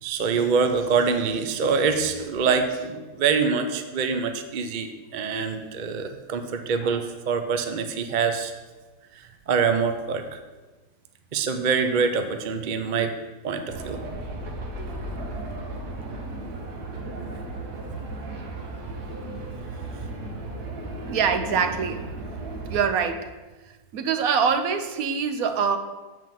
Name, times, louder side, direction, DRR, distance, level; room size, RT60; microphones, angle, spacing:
voice 1, 0.0-8.5 9.2-10.4 11.3-13.1 13.4-14.0 19.9-20.1, right 5 dB, 45° right, 7 dB, 0.6 m, -25 dB
sound 1, 13.7-22.8, right 2 dB, 85° right, 1.7 m, -35 dB
voice 2, 21.1-22.0 22.7-23.3 23.9-25.8, right 6 dB, 70° right, 7 dB, 1.1 m, -24 dB
7.8 x 4.8 x 7.2 m, 1.2 s
omnidirectional pair, 1.7 m